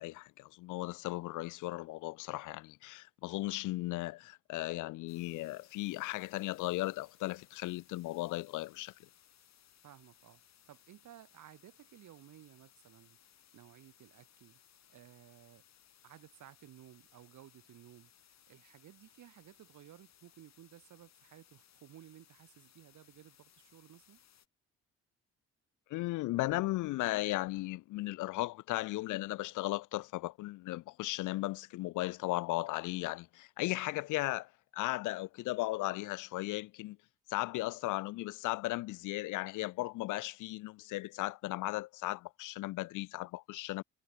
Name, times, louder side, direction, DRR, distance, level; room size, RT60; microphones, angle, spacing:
voice 1, 0.0-8.9 25.9-37.0 37.3-43.8, left 19 dB, 80° left, 0.5 m, -36 dB
sound 1, 5.1-24.5, left 10 dB, 60° left, 4.0 m, -65 dB
voice 2, 9.8-14.6 14.9-15.6 16.0-24.2, right 12 dB, 75° right, 5.2 m, -57 dB
cardioid pair, 90°, 30 cm